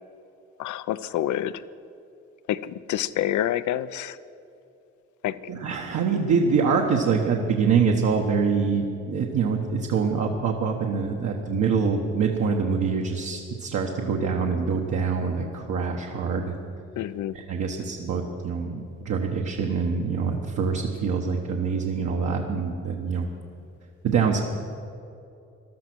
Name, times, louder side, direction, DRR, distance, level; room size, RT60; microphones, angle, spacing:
voice 1, 0.6-1.5 2.5-4.2 5.2-5.4 17.0-17.4, left 12 dB, 75° left, 15 dB, 0.6 m, -27 dB
voice 2, 5.5-16.5 17.3-23.3 24.0-24.4, right 5 dB, 65° right, 0 dB, 1.4 m, -25 dB
15.0 x 12.0 x 6.2 m, 2.6 s
cardioid pair, 90°, 30 cm